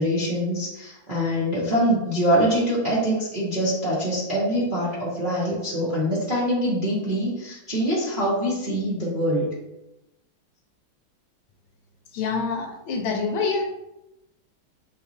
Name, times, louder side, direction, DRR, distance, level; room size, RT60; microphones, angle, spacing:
voice 1, 0.0-9.5, equal, 40° right, -9 dB, 0.7 m, -24 dB
voice 2, 12.1-13.6, left 4 dB, 75° left, 2 dB, 1.3 m, -26 dB
5.2 x 3.0 x 2.7 m, 0.91 s
omnidirectional pair, 2.3 m